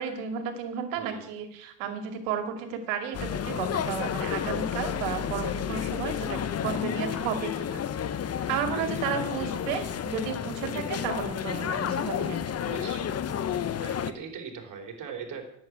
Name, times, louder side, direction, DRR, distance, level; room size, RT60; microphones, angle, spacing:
voice 1, 0.0-7.8 8.5-12.7, right 7 dB, 80° right, 8 dB, 2.4 m, -33 dB
sound 1, 3.1-14.1, left 8 dB, 35° left, 0.9 m, -31 dB
voice 2, 6.2-6.7 8.7-8.8 12.6-13.1 13.8-15.4, right 6 dB, 45° right, 2 dB, 3.7 m, -40 dB
10.5 x 7.9 x 9.4 m, 0.73 s
supercardioid pair, 100°, 44 cm